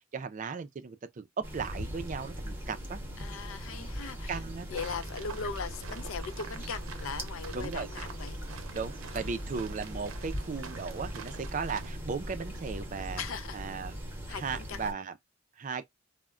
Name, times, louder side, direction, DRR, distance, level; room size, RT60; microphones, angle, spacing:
voice 1, 0.0-3.0 3.7-3.9 4.3-4.7 7.5-7.9 8.7-13.2 13.5-14.0 14.3-15.1 15.6-15.8, right 5 dB, 40° right, 0.4 m, -36 dB
sound 1, 1.4-14.9, equal, 10° right, 0.9 m, -40 dB
voice 2, 3.2-4.4 4.7-8.4 9.1-9.3 13.2-13.6 14.3-14.8, left 5 dB, 80° left, 0.5 m, -39 dB
sound 2, 4.8-11.9, right 6 dB, 85° right, 0.6 m, -48 dB
2.2 x 2.1 x 3.6 m
head